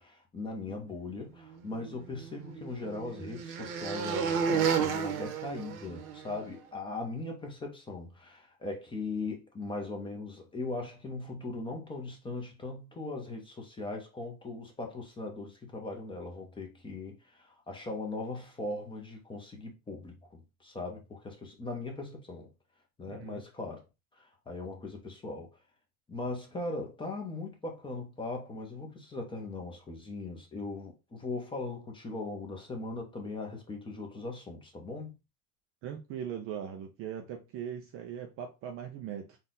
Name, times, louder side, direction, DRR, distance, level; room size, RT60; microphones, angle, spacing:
voice 1, 0.0-22.5 23.0-23.8 24.2-25.5 26.1-35.1, left 2 dB, 10° left, 0.9 m, -39 dB
sound 1, 1.8-6.4, right 6 dB, 75° right, 1.1 m, -32 dB
voice 2, 23.1-23.4 35.8-39.4, right 9 dB, 35° right, 0.5 m, -40 dB
4.1 x 2.5 x 3.8 m
supercardioid pair, 135°, 43 cm